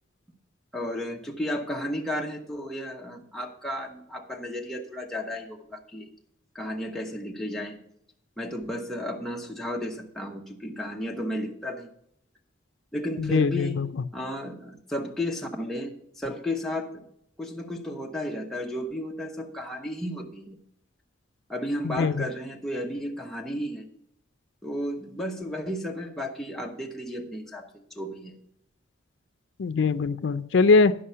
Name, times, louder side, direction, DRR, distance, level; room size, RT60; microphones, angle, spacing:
voice 1, 0.7-6.1 6.5-7.8 8.4-11.9 12.9-13.8 14.1-17.0 17.4-20.6 21.5-23.9 24.6-28.4, left 1 dB, ahead, -1 dB, 1.0 m, -33 dB
voice 2, 13.2-13.9 21.8-22.2 29.6-31.0, left 4 dB, 75° left, 13 dB, 0.4 m, -22 dB
11.0 x 5.6 x 5.6 m, 0.73 s
head